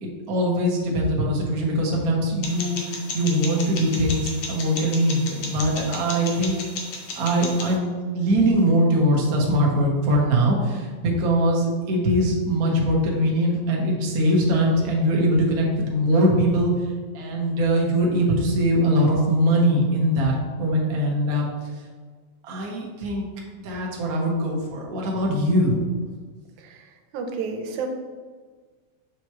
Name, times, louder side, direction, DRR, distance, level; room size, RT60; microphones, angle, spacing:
voice 1, 0.0-6.6 7.1-16.7 17.1-20.3 20.6-21.5 22.4-23.2 23.6-25.8, equal, 60° right, -2 dB, 0.9 m, -22 dB
sound 1, 2.4-7.7, left 3 dB, 75° left, 1.1 m, -34 dB
voice 2, 26.6-26.9 27.1-27.9, right 5 dB, 90° right, 4 dB, 2.1 m, -31 dB
6.8 x 4.8 x 2.9 m, 1.5 s
omnidirectional pair, 3.3 m